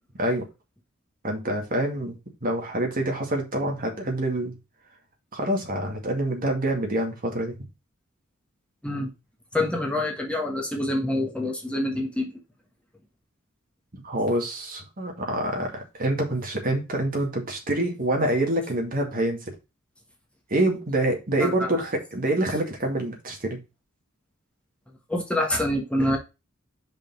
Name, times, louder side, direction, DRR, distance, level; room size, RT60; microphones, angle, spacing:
voice 1, 1.2-4.6 5.3-7.6 14.0-19.5 20.5-23.6, right 1 dB, 45° right, 2 dB, 2.1 m, -26 dB
voice 2, 9.5-12.3 21.4-21.8 25.1-26.2, left 1 dB, 5° left, 0 dB, 1.3 m, -26 dB
5.2 x 4.3 x 5.4 m, 0.26 s
head